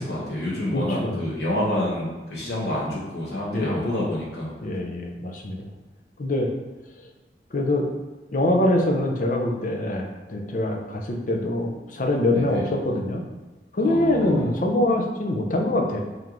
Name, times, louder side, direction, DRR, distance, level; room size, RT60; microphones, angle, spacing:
voice 1, 0.0-4.6 12.3-12.6 13.8-14.5, left 1 dB, 65° left, -5 dB, 1.3 m, -28 dB
voice 2, 0.7-1.2 3.5-3.9 4.6-5.7 6.2-6.5 7.0-7.1 7.5-7.9 8.3-13.2 13.7-16.0, left 1 dB, 45° left, 2 dB, 0.5 m, -24 dB
3.7 x 3.4 x 3.0 m, 1.2 s
head